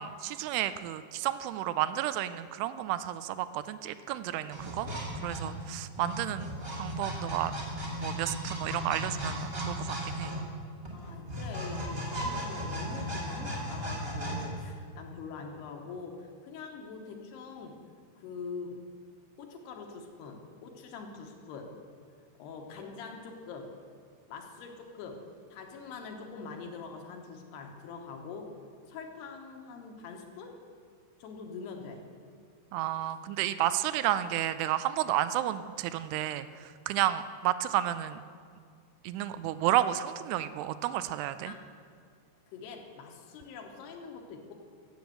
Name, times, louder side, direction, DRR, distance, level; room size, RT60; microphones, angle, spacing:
voice 1, 0.0-4.9 5.2-6.5 6.8-7.5 8.0-10.3 32.7-38.2 39.0-41.5, right 13 dB, 85° right, 13 dB, 2.5 m, -31 dB
sound 1, 4.5-14.4, equal, 35° right, 0.9 m, -36 dB
voice 2, 10.9-17.8 18.2-18.8 19.4-21.8 22.4-23.7 24.3-28.6 28.9-30.6 31.2-32.1 41.4-41.6 42.5-44.5, left 4 dB, 75° left, 2 dB, 3.1 m, -44 dB
15.0 x 7.2 x 7.8 m, 2.2 s
omnidirectional pair, 4.9 m